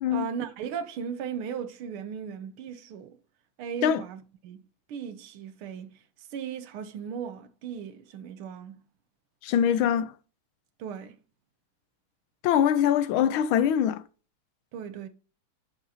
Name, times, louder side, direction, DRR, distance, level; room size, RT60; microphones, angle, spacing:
voice 1, 0.1-3.2 3.6-4.6 4.9-8.8 10.8-11.2 14.7-15.1, right 7 dB, 90° right, 1.8 m, -37 dB
voice 2, 9.4-10.1 12.4-14.0, left 9 dB, 75° left, 1.4 m, -23 dB
10.0 x 6.7 x 2.8 m
omnidirectional pair, 2.3 m